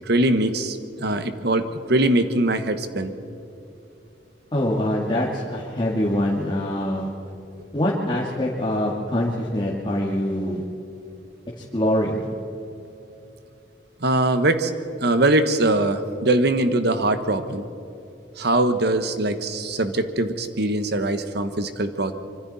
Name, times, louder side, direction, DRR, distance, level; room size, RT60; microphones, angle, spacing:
voice 1, 0.0-3.1 14.0-14.7 15.0-17.6 18.4-22.1, right 2 dB, 65° right, 9 dB, 1.4 m, -22 dB
voice 2, 4.5-7.1 7.7-10.6 11.6-12.3, left 1 dB, 25° left, -5 dB, 2.1 m, -24 dB
25.5 x 24.5 x 4.3 m, 2.8 s
head